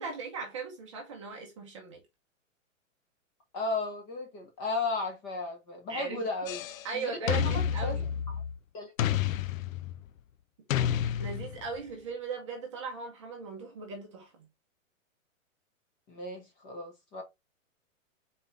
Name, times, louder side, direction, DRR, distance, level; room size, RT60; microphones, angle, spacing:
voice 1, 0.0-2.0 5.9-6.3 6.8-8.1 11.2-14.5, right 4 dB, 25° right, 0.8 m, -38 dB
voice 2, 3.5-6.6 6.9-7.1 7.5-8.0 8.3-8.4 8.7-8.9 16.1-17.2, left 3 dB, 15° left, 0.9 m, -35 dB
sound 1, 6.5-6.9 7.3-8.6 9.0-10.1 10.7-11.8, left 9 dB, 75° left, 0.5 m, -30 dB
4.2 x 3.5 x 3.2 m
hypercardioid pair, 175°, 40 cm